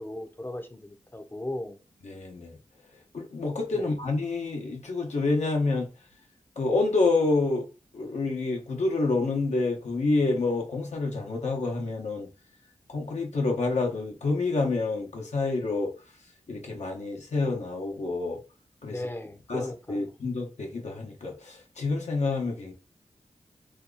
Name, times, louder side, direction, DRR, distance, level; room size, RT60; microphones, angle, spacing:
voice 1, 0.0-1.8 3.7-3.9 18.9-20.1, left 1 dB, 15° left, 0.6 m, -37 dB
voice 2, 2.0-2.6 3.1-5.9 6.6-7.7 7.9-12.3 12.9-15.9 16.5-18.4 18.8-19.0 19.5-19.6 19.9-22.7, left 3 dB, 80° left, 0.9 m, -28 dB
2.8 x 2.3 x 3.7 m
wide cardioid pair, 65°, 12 cm